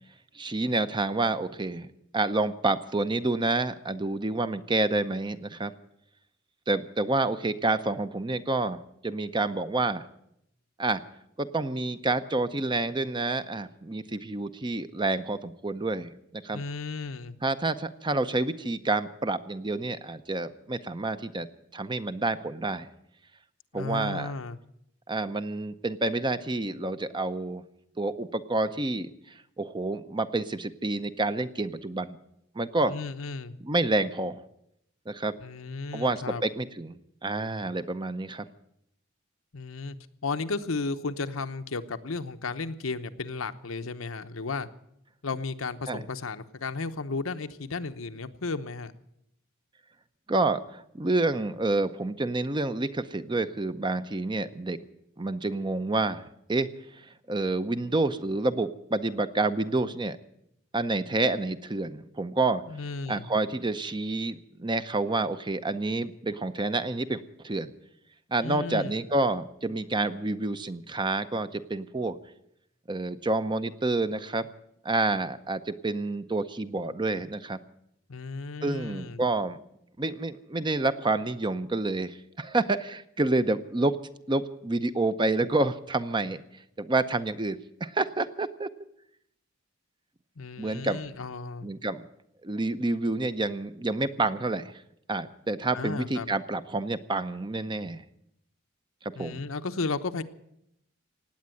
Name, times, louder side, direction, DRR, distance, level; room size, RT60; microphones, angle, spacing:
voice 1, 0.3-1.9 2.1-5.7 6.7-10.0 10.8-11.0 11.4-16.6 17.4-21.5 21.7-22.9 23.7-24.3 25.1-27.6 28.0-29.1 29.6-32.2 32.6-32.9 33.6-34.4 35.1-35.3 35.9-37.0 37.2-38.5 45.9-46.0 50.3-54.8 55.2-56.7 57.3-60.2 60.7-62.6 63.1-67.7 68.3-72.2 72.9-74.5 74.8-77.6 78.6-79.6 80.0-84.0 84.3-86.4 86.8-88.7 90.6-91.0 91.6-92.1 92.4-94.7 95.1-98.0 99.0-99.4, right 2 dB, 25° right, 12 dB, 0.7 m, -28 dB
voice 2, 16.5-17.4 23.7-24.6 32.9-33.6 35.4-36.4 39.5-40.0 40.2-44.7 45.2-48.9 62.6-63.3 68.4-69.0 78.1-79.2 90.4-91.7 95.7-96.3 99.1-100.2, left 4 dB, 85° left, 9 dB, 0.9 m, -34 dB
18.0 x 8.6 x 9.2 m, 0.77 s
head